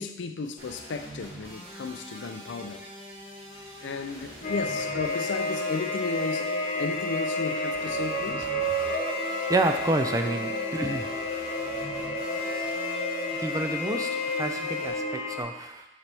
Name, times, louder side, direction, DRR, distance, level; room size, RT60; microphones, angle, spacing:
voice 1, 0.0-2.8 3.8-6.5 6.8-8.5, left 4 dB, 80° left, 8 dB, 0.4 m, -34 dB
sound 1, 0.6-14.9, right 1 dB, 35° right, 1.4 m, -44 dB
sound 2, 4.4-15.4, left 1 dB, 40° left, 0.8 m, -30 dB
voice 2, 9.5-11.1 13.4-15.9, right 2 dB, 20° right, 6 dB, 0.3 m, -29 dB
7.2 x 4.0 x 3.4 m, 0.97 s
head